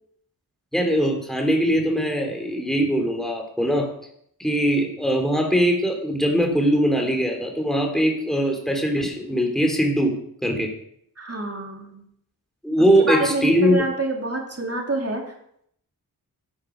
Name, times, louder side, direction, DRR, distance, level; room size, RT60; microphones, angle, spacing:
voice 1, 0.7-3.9 4.4-10.1 10.4-10.7 12.6-13.8, equal, ahead, 2 dB, 3.2 m, -21 dB
voice 2, 11.2-12.0 12.8-15.2, right 2 dB, 40° right, 1 dB, 3.1 m, -27 dB
15.0 x 7.6 x 6.1 m, 0.70 s
wide cardioid pair, 80°, 37 cm